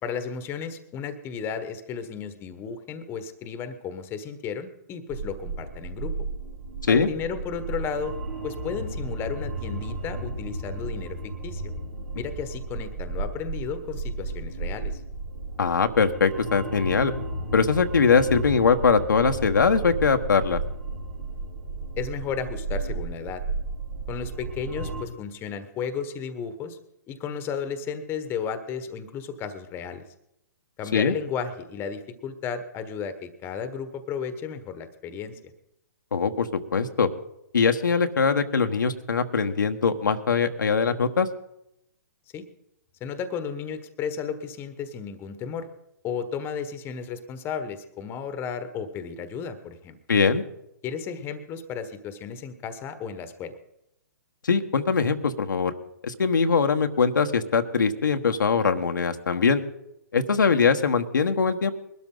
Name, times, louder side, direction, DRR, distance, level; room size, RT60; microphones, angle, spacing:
voice 1, 0.0-6.1 6.9-8.1 8.4-11.6 12.1-15.0 22.0-23.4 24.1-26.8 27.1-30.0 30.8-35.4 42.3-42.4 43.0-45.7 46.0-50.0 50.8-53.5, left 6 dB, 20° left, 10 dB, 1.3 m, -33 dB
sound 1, 5.1-25.0, right 2 dB, 80° right, 4.5 m, -34 dB
voice 2, 15.6-17.1 17.5-20.6 30.9-31.1 36.1-37.1 37.5-41.3 50.1-50.4 54.4-55.7 56.0-59.6 60.1-61.7, left 5 dB, 85° left, 6 dB, 1.3 m, -22 dB
21.5 x 12.5 x 3.9 m, 0.80 s
hypercardioid pair, 135°, 10 cm